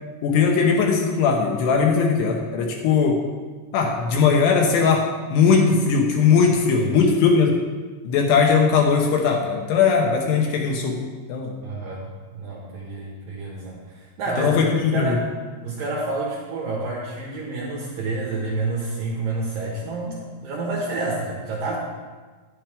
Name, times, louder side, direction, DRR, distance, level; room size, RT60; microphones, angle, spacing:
voice 1, 0.2-3.2 3.7-5.1 5.3-7.6 8.0-11.0 11.3-11.5 14.4-15.2, left 5 dB, 75° left, 1 dB, 2.8 m, -19 dB
voice 2, 11.6-15.3 15.6-21.8, right 2 dB, 70° right, -3 dB, 2.2 m, -29 dB
10.0 x 8.8 x 3.5 m, 1.4 s
omnidirectional pair, 5.3 m